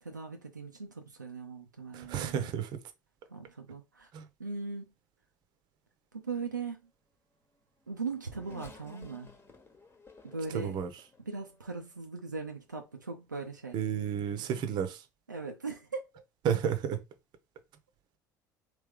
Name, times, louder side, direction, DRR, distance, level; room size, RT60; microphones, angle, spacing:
voice 1, 0.0-2.5 3.3-4.1 4.4-4.9 6.1-6.8 7.9-9.3 10.2-10.8 11.2-13.8 14.4-14.5 15.3-16.2, right 4 dB, 90° right, 0.4 m, -39 dB
voice 2, 1.9-2.8 4.1-4.3 10.5-10.9 13.7-15.0 16.4-17.0, right 8 dB, 50° right, 0.8 m, -31 dB
Race car auto racing / Accelerating revving vroom, 7.5-12.0 12.7-12.8 13.9-14.1, left 3 dB, 25° left, 1.1 m, -55 dB
3.2 x 3.0 x 3.5 m
figure-of-eight pair, 65°, 10 cm